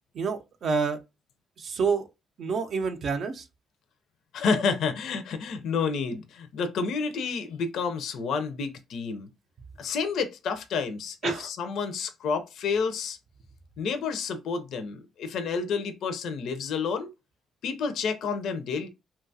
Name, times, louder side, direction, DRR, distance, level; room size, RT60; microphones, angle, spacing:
voice 1, 0.1-1.0 1.6-2.1 2.4-3.4 11.2-11.5, right 5 dB, 60° right, 0.5 m, -28 dB
voice 2, 4.3-9.3 9.8-13.2 13.8-17.1 17.6-18.9, left 5 dB, 75° left, 0.4 m, -29 dB
2.8 x 2.2 x 2.6 m
cardioid pair, 90°, 0 cm